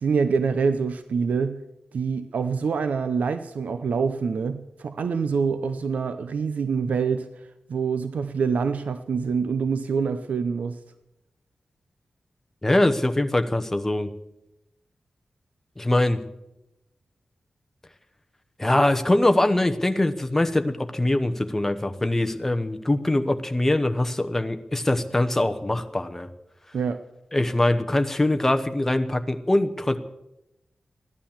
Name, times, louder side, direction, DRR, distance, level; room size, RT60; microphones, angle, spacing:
voice 1, 0.0-1.6 1.9-7.3 7.7-10.8 26.7-27.0, right 5 dB, 80° right, 10 dB, 0.7 m, -25 dB
voice 2, 12.6-14.1 15.8-16.2 18.6-26.3 27.3-30.0, left 1 dB, 15° left, 8 dB, 1.0 m, -23 dB
15.0 x 11.5 x 7.3 m, 0.90 s
wide cardioid pair, 140°, 3 cm